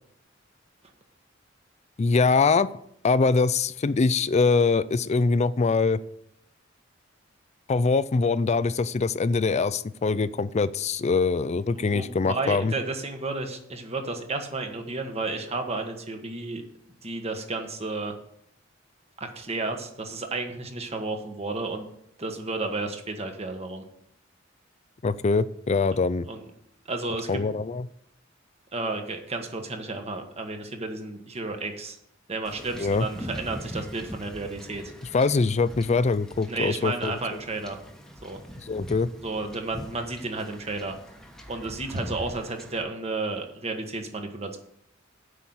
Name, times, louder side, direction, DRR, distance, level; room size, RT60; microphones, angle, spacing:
voice 1, 2.0-2.7 3.0-6.0 7.7-12.7 25.0-26.3 27.3-27.9 32.8-33.1 35.1-37.1 38.7-39.1, left 4 dB, 35° left, 16 dB, 0.4 m, -23 dB
voice 2, 11.7-16.6 17.0-18.1 19.2-21.9 22.2-23.8 26.3-26.4 26.9-27.4 28.7-32.0 32.3-34.9 36.5-37.8 38.2-38.4 39.2-41.0 41.5-44.6, right 3 dB, 35° right, 5 dB, 1.4 m, -32 dB
Wind / Ocean / Boat Water vehicle, 32.4-42.8, equal, 5° left, 1.1 m, -42 dB
8.4 x 5.7 x 8.0 m, 0.72 s
head